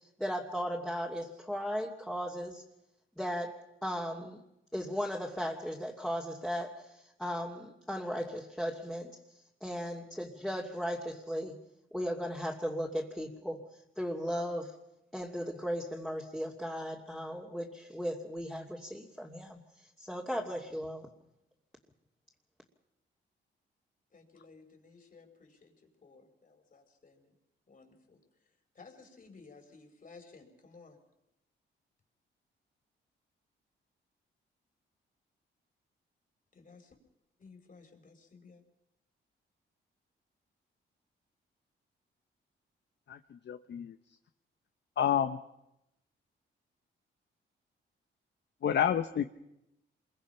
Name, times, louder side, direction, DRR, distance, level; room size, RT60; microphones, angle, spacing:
voice 1, 0.0-2.6 3.2-4.4 4.7-9.2 9.6-11.6 11.9-13.7 14.0-14.7 15.1-21.1, equal, 5° left, -2 dB, 2.7 m, -36 dB
voice 2, 24.1-25.7 26.0-27.3 27.7-28.2 28.8-31.0 36.5-37.0 37.4-38.6, left 4 dB, 40° left, 4 dB, 5.1 m, -56 dB
voice 3, 43.1-44.0 45.0-45.4 48.6-49.3, left 9 dB, 60° left, 9 dB, 1.0 m, -29 dB
27.5 x 22.0 x 5.7 m, 0.87 s
cardioid pair, 80°, 20 cm